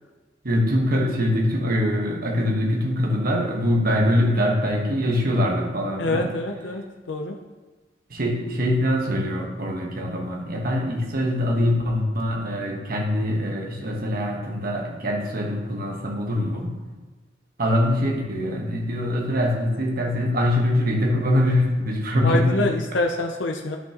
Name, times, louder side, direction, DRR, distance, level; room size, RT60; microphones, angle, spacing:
voice 1, 0.4-6.3 8.1-16.8 17.6-22.7, left 1 dB, 50° right, 0 dB, 1.3 m, -23 dB
voice 2, 6.0-7.4 22.2-23.8, left 2 dB, 80° left, 3 dB, 0.6 m, -26 dB
11.0 x 6.0 x 3.0 m, 1.3 s
head